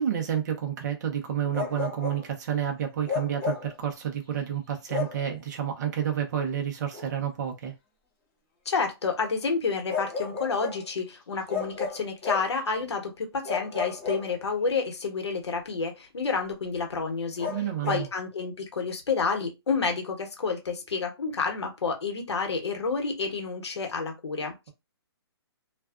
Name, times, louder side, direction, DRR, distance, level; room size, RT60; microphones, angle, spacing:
voice 1, 0.0-7.7 17.5-18.1, right 9 dB, 40° right, 0.7 m, -30 dB
Bark, 1.5-2.3 3.1-3.8 4.9-5.3 6.9-7.1 9.9-10.9 11.5-12.6 13.4-14.7 17.4-18.1, left 5 dB, 25° left, 1.0 m, -33 dB
voice 2, 8.6-17.5 17.9-24.7, left 4 dB, 85° left, 1.0 m, -29 dB
2.5 x 2.3 x 2.4 m
hypercardioid pair, 160°, 14 cm